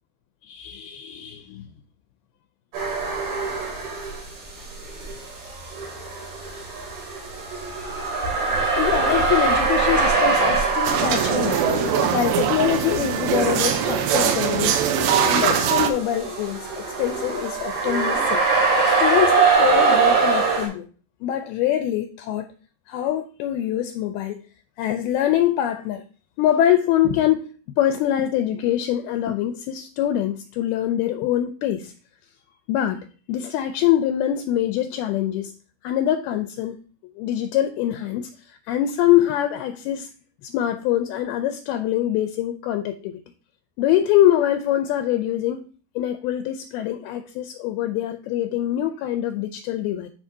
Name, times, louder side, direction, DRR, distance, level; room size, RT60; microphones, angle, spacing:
voice 1, 0.5-1.7 8.8-11.6 12.1-18.4 18.9-20.9 21.2-22.5 22.9-24.4 24.8-26.0 26.4-27.5 27.8-31.9 32.7-35.5 35.8-36.8 37.2-40.1 40.4-43.2 43.8-45.7 46.0-50.1, left 11 dB, 85° left, 2.3 m, -24 dB
sound 1, 2.7-4.3 4.6-20.7, right 4 dB, 70° right, 4.8 m, -23 dB
sound 2, 10.9-15.9, right 8 dB, 90° right, 3.0 m, -22 dB
12.5 x 5.1 x 2.7 m
omnidirectional pair, 4.8 m